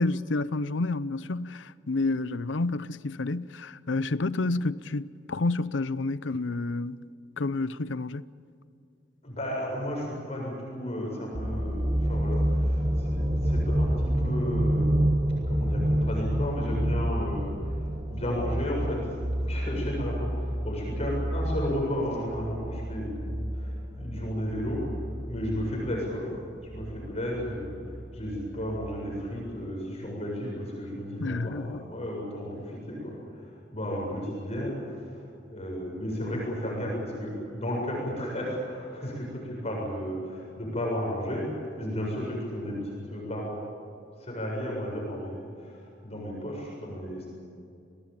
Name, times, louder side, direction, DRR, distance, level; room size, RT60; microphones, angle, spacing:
voice 1, 0.0-7.0 7.4-8.2 31.2-31.8, left 2 dB, 75° left, 0.7 m, -29 dB
voice 2, 9.2-15.1 15.5-17.8 18.1-26.3 26.7-27.8 28.1-41.5 41.8-43.7 44.2-47.3, equal, 35° left, 7.5 m, -33 dB
sound 1, 11.3-29.2 29.6-29.7, equal, 30° right, 1.4 m, -29 dB
29.5 x 19.5 x 8.7 m
head